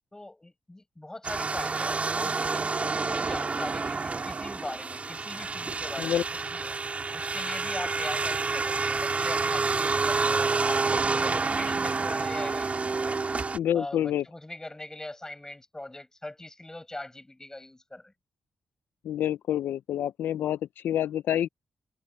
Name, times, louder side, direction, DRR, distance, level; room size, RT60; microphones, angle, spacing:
voice 1, 0.1-6.8 7.1-13.2 13.7-18.1, left 1 dB, 15° left, 7.4 m, -41 dB
sound 1, 1.2-13.6, right 4 dB, 40° right, 3.6 m, -28 dB
voice 2, 13.5-14.2 19.0-21.5, left 11 dB, 90° left, 0.4 m, -27 dB
cardioid pair, 65°, 3 cm